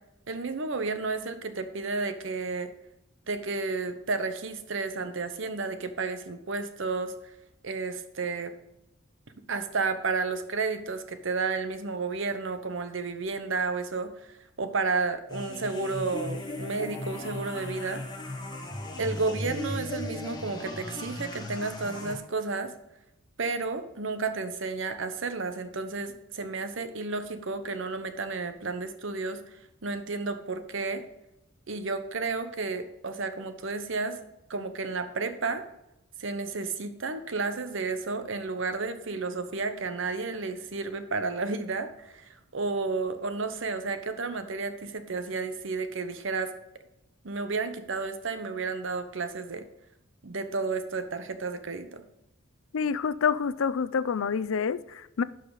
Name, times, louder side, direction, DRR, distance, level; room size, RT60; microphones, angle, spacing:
voice 1, 0.3-2.7 3.3-7.1 7.6-8.6 9.5-18.0 19.0-22.7 23.4-29.4 29.8-31.0 31.7-34.2 34.5-35.6 36.2-46.5 47.2-49.7 50.2-52.1, right 4 dB, 65° right, 0.9 m, -32 dB
sound 1, 15.3-22.1, left 1 dB, 20° left, 1.5 m, -37 dB
voice 2, 52.7-55.2, left 6 dB, 80° left, 0.5 m, -27 dB
11.5 x 5.5 x 4.0 m
head